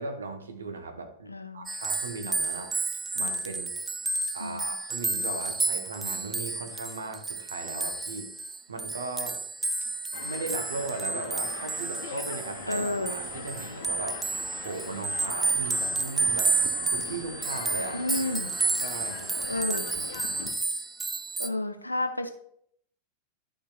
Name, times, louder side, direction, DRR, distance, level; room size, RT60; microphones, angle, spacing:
voice 1, 0.0-2.7 3.1-3.7 4.3-8.3 8.7-9.4 9.8-9.9 10.2-14.2 14.5-16.5 16.9-18.0 18.8-19.3, right 3 dB, 70° right, 6 dB, 1.0 m, -37 dB
voice 2, 1.3-1.7 4.4-4.7 12.7-13.2 17.9-18.5 19.5-19.9 21.4-22.3, left 2 dB, 85° left, 7 dB, 0.6 m, -31 dB
sound 1, 1.7-21.5, right 3 dB, 15° right, 0.5 m, -31 dB
sound 2, 10.1-20.5, left 6 dB, 55° left, 0.9 m, -42 dB
11.5 x 5.0 x 2.4 m, 0.68 s
figure-of-eight pair, 90°, 0 cm